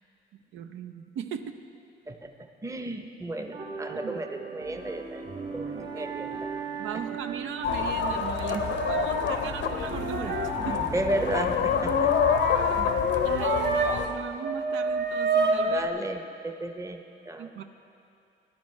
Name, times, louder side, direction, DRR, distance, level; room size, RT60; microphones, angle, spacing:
voice 1, 0.5-1.6 4.0-4.2 6.0-6.1 6.8-10.9 13.2-15.9 17.4-17.6, right 7 dB, 80° right, 7 dB, 0.6 m, -38 dB
voice 2, 2.1-6.5 6.9-7.0 8.4-8.7 10.6-12.1 12.7-13.1 15.7-17.5, right 1 dB, 15° right, 5 dB, 0.7 m, -34 dB
sound 1, 3.5-12.1, right 3 dB, 45° right, 2.0 m, -42 dB
sound 2, 5.3-14.1 14.4-15.9, right 4 dB, 65° right, 1.0 m, -31 dB
sound 3, 7.6-14.1, left 7 dB, 65° left, 0.7 m, -27 dB
15.0 x 10.5 x 3.2 m, 2.6 s
cardioid pair, 90°, 20 cm